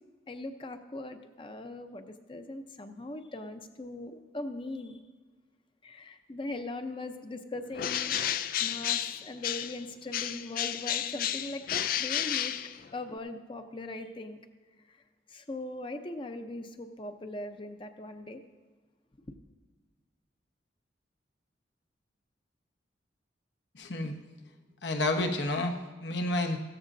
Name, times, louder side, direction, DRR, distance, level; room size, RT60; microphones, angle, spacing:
voice 1, 0.3-5.0 5.8-8.2 8.6-12.6 12.9-14.4 14.9-15.0 15.3-18.4, left 2 dB, 30° left, 7 dB, 0.7 m, -40 dB
Bird, 7.7-9.8 10.1-13.2, left 10 dB, 50° left, 0.4 m, -32 dB
voice 2, 23.7-24.1 24.8-26.6, left 2 dB, 70° left, 4 dB, 1.1 m, -30 dB
16.0 x 13.5 x 2.7 m, 1.4 s
head